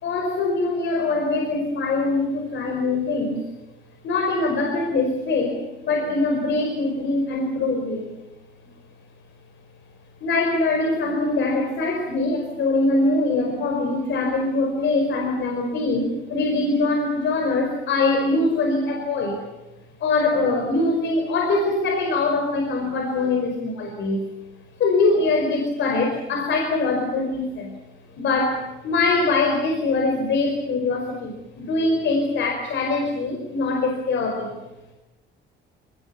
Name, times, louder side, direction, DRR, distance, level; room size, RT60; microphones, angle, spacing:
voice 1, 0.0-3.5 4.0-8.2 10.2-19.4 20.0-24.3 24.8-27.7 28.2-34.6, left 3 dB, 70° left, 3 dB, 5.1 m, -23 dB
29.0 x 20.0 x 7.0 m, 0.98 s
cardioid pair, 135°, 20 cm